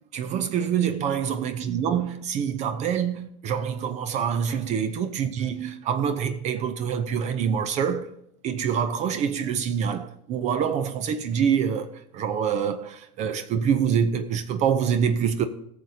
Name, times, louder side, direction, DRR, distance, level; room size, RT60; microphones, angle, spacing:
voice 1, 0.1-8.2 8.4-15.5, right 7 dB, 40° right, 0.6 m, -26 dB
14.5 x 6.7 x 2.8 m
hypercardioid pair, 85°, 17 cm